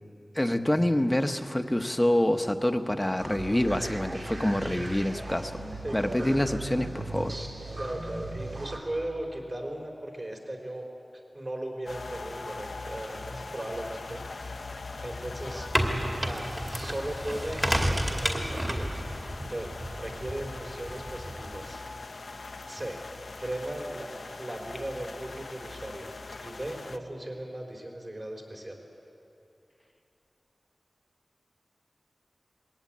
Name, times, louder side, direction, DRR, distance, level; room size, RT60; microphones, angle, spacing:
voice 1, 0.3-5.6 5.9-7.3, left 1 dB, 15° left, 7 dB, 1.1 m, -26 dB
sound 1, 3.2-8.8, right 2 dB, 65° right, 2.9 m, -38 dB
voice 2, 5.8-6.3 7.8-10.9 11.3-14.6 15.0-15.7 16.2-18.9 19.4-21.8 22.3-22.4 22.7-24.1 24.4-26.1 26.4-28.8, right 1 dB, 40° right, 1 dB, 4.0 m, -37 dB
sound 2, 11.9-27.0, left 3 dB, 75° left, 0.8 m, -41 dB
sound 3, 15.4-21.6, right 1 dB, 20° right, 2.4 m, -31 dB
21.5 x 18.0 x 8.8 m, 2.8 s
wide cardioid pair, 85°, 0 cm